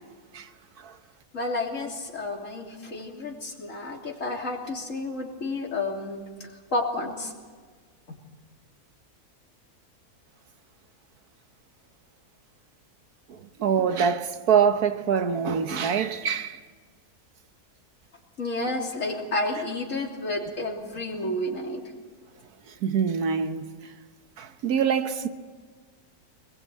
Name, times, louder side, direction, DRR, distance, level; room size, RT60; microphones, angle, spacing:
voice 1, 1.3-7.3 18.4-21.9, left 2 dB, 55° left, 3.6 m, -31 dB
voice 2, 13.3-16.6 22.8-23.7 24.4-25.3, right 7 dB, 80° right, 1.6 m, -25 dB
23.0 x 21.0 x 8.4 m
omnidirectional pair, 1.6 m